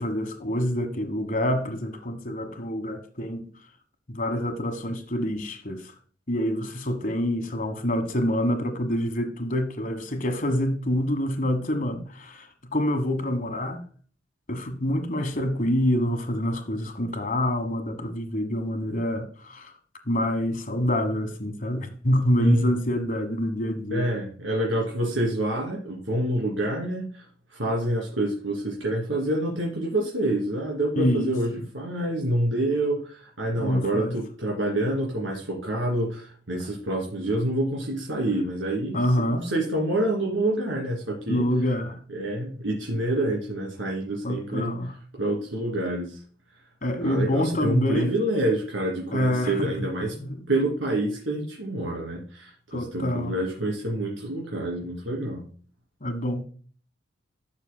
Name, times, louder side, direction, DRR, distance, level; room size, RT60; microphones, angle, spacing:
voice 1, 0.0-3.5 4.1-5.9 6.3-13.8 14.5-19.7 20.1-24.1 30.9-31.6 33.6-34.2 38.9-39.5 41.3-42.0 44.2-44.9 46.8-48.1 49.1-49.9 50.1-50.5 52.7-53.4 56.0-56.4, equal, 45° left, 1.3 m, -26 dB
voice 2, 22.4-22.7 23.9-27.2 27.5-39.0 39.4-41.4 42.1-44.7 45.2-46.2 47.0-50.1 50.5-55.5, right 1 dB, 85° right, 2.8 m, -27 dB
12.5 x 6.5 x 2.2 m
head